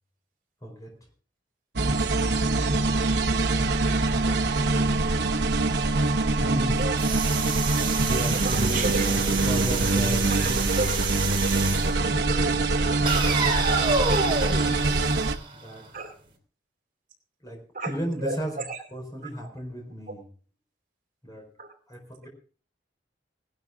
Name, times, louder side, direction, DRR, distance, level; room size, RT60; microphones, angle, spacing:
voice 1, 0.6-0.9 2.3-2.9 4.1-5.1 6.4-6.9 8.0-10.6 11.5-14.3 15.5-15.9 17.4-18.6 18.9-20.3 21.2-21.5 21.9-22.3, equal, 20° left, 1 dB, 4.9 m, -35 dB
sound 1, 1.8-15.4, right 2 dB, 70° right, 1.0 m, -24 dB
sound 2, 7.0-11.9 13.1-16.0, right 4 dB, 30° right, 3.1 m, -29 dB
voice 2, 8.4-9.6 10.3-11.0 12.3-12.4 13.1-13.4 13.9-14.6 15.9-16.1 17.7-17.9 18.2-18.8 21.6-21.7, right 2 dB, 45° right, 3 dB, 2.6 m, -33 dB
18.0 x 12.0 x 3.8 m, 0.42 s
head